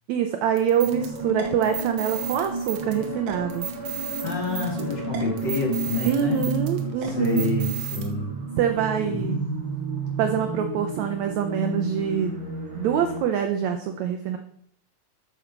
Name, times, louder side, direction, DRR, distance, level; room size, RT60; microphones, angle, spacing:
voice 1, 0.1-3.7 6.0-7.5 8.6-9.5 10.2-12.4 12.7-14.4, right 8 dB, 80° right, 6 dB, 1.6 m, -25 dB
sound 1, 0.6-8.1, right 9 dB, 65° right, 1.7 m, -36 dB
sound 2, 0.8-13.2, right 3 dB, 25° right, 1.9 m, -32 dB
voice 2, 4.2-6.4 7.0-8.3 9.0-9.7, left 3 dB, 35° left, -2 dB, 2.5 m, -28 dB
13.0 x 5.3 x 4.5 m, 0.66 s
omnidirectional pair, 4.0 m